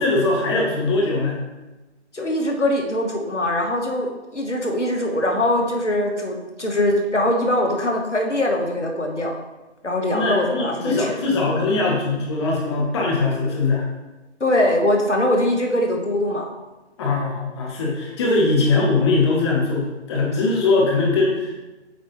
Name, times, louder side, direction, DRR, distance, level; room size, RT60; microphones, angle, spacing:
voice 1, 0.0-1.4 10.1-13.8 17.0-21.6, left 3 dB, 25° left, -2 dB, 1.1 m, -21 dB
voice 2, 2.1-9.4 9.8-11.2 14.4-16.5, left 1 dB, 90° left, 2 dB, 1.4 m, -22 dB
7.9 x 4.4 x 3.1 m, 1.1 s
figure-of-eight pair, 145°, 34 cm